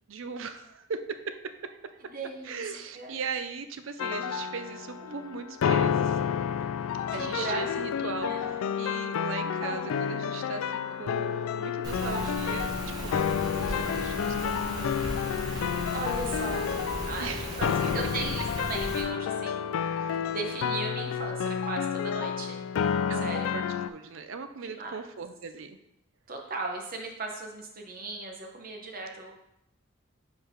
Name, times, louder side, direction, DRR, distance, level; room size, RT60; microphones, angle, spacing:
voice 1, 0.1-1.8 2.4-6.2 7.1-15.1 17.2-17.6 20.0-20.3 23.1-23.6 23.9-25.8, right 5 dB, 70° right, 9 dB, 0.5 m, -39 dB
voice 2, 2.0-3.2 5.0-5.4 7.1-7.7 8.0-8.5 9.6-9.9 12.0-12.3 15.5-16.7 17.1-19.9 20.2-22.6 23.1-23.5 24.6-25.0 26.3-29.3, right 3 dB, 45° right, 2 dB, 1.0 m, -37 dB
sound 1, 4.0-23.9, left 7 dB, 80° left, 0.3 m, -30 dB
Rain, 11.8-19.0, right 1 dB, 20° right, 1.0 m, -37 dB
4.7 x 4.6 x 5.0 m, 0.83 s
head